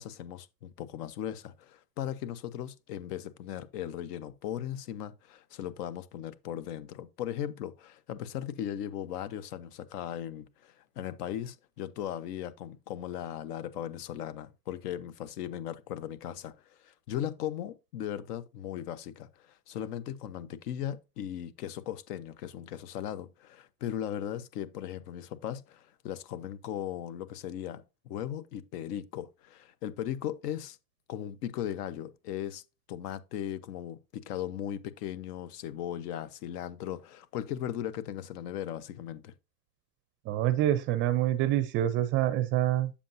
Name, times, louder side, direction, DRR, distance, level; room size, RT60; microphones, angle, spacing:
voice 1, 0.0-30.8 31.1-32.6 32.9-39.3, left 10 dB, 70° left, 1.1 m, -38 dB
voice 2, 40.3-42.9, right 13 dB, 25° right, 0.4 m, -26 dB
8.5 x 7.3 x 2.6 m
supercardioid pair, 140°, 49 cm